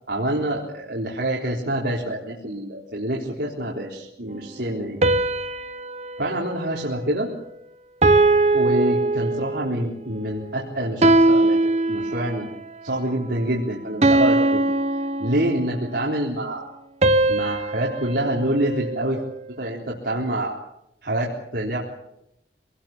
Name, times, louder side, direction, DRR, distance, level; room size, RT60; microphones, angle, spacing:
voice 1, 0.1-5.0 6.2-7.3 8.5-11.6 11.9-12.5 12.8-14.6 15.2-16.7 17.3-19.2 19.6-20.6 21.0-21.8, right 1 dB, 70° right, -4 dB, 3.9 m, -26 dB
sound 1, 5.0-7.5 8.0-9.8 11.0-12.5 14.0-15.9 17.0-19.4, right 2 dB, 35° right, 1.0 m, -21 dB
25.5 x 19.5 x 7.4 m, 0.80 s
head